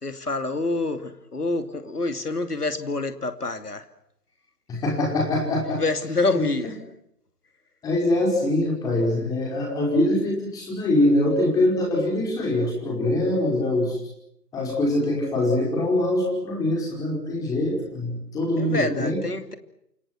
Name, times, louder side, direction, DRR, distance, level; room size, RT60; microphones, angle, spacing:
voice 1, 0.0-3.8 5.8-6.7 18.6-19.5, left 3 dB, 70° left, 10 dB, 2.9 m, -27 dB
voice 2, 4.7-5.8 6.3-6.7 7.8-14.0 14.5-19.2, left 1 dB, 5° left, 0 dB, 5.0 m, -23 dB
28.5 x 24.0 x 6.0 m, 0.76 s
figure-of-eight pair, 145°, 48 cm